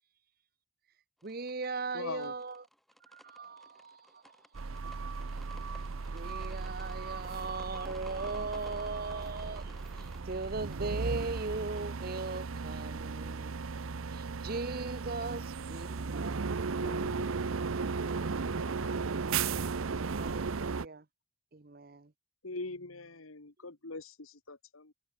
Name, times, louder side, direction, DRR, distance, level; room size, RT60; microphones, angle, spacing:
sound 1, 1.2-12.4, equal, ahead, 2.6 m, -56 dB
voice 1, 1.2-2.5 3.1-4.2 6.1-9.8 10.3-13.5 14.1-15.4 15.7-15.9 16.2-16.3 16.9-17.0 20.2-21.0 21.5-22.1, right 3 dB, 45° right, 0.8 m, -38 dB
voice 2, 1.9-2.3 16.8-20.1 22.4-24.9, left 3 dB, 90° left, 1.9 m, -45 dB
sound 2, 4.5-20.9, right 4 dB, 85° right, 0.7 m, -36 dB
voice 3, 15.2-15.3, left 1 dB, 35° left, 4.9 m, -65 dB
head